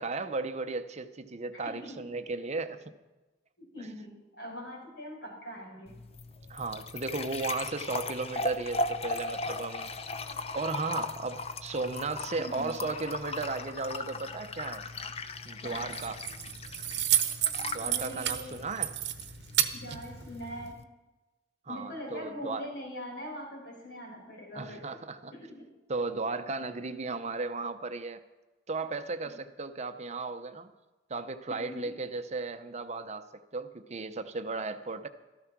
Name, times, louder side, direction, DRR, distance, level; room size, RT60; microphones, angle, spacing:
voice 1, 0.0-2.9 6.5-10.0 10.5-14.8 15.4-16.2 17.7-18.9 21.7-22.7 24.5-25.3 25.9-28.2 28.7-30.7 31.1-35.1, right 3 dB, 40° right, 10 dB, 0.7 m, -35 dB
voice 2, 1.5-2.1 3.6-6.0 12.4-12.7 15.6-16.0 17.8-18.7 19.7-20.8 21.7-25.0 25.3-25.7 31.5-32.0, equal, 75° left, -1 dB, 5.4 m, -42 dB
sound 1, 5.9-20.8, left 2 dB, 35° left, 0.7 m, -38 dB
Keys jangling, 15.7-20.7, right 11 dB, 65° right, 0.9 m, -32 dB
13.5 x 13.5 x 6.0 m, 1.1 s
head